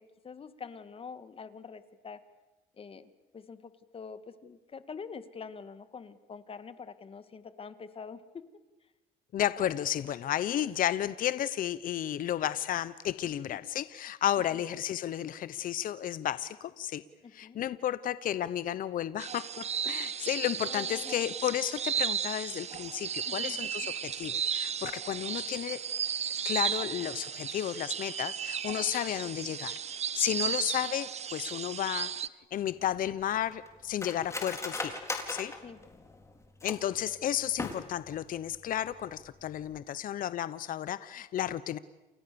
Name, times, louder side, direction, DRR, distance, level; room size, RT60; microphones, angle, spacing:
voice 1, 0.0-2.2 2.8-8.5 17.2-17.6 20.7-21.1 23.3-23.6 30.5-30.6 35.6-35.8, left 5 dB, 35° left, 12 dB, 2.0 m, -45 dB
voice 2, 9.3-17.0 17.3-25.8 26.4-29.7 30.1-32.1 32.5-35.0 35.3-35.5 36.6-41.8, left 11 dB, 55° left, 16 dB, 0.9 m, -32 dB
sound 1, 19.2-32.3, right 8 dB, 40° right, 1.0 m, -34 dB
Cutlery silverware, 32.5-37.0 37.5-38.2 38.5-38.6 38.9-39.3 39.6-39.8, left 2 dB, 15° left, 4.1 m, -39 dB
29.5 x 28.5 x 7.0 m, 1.1 s
cardioid pair, 110°, 17 cm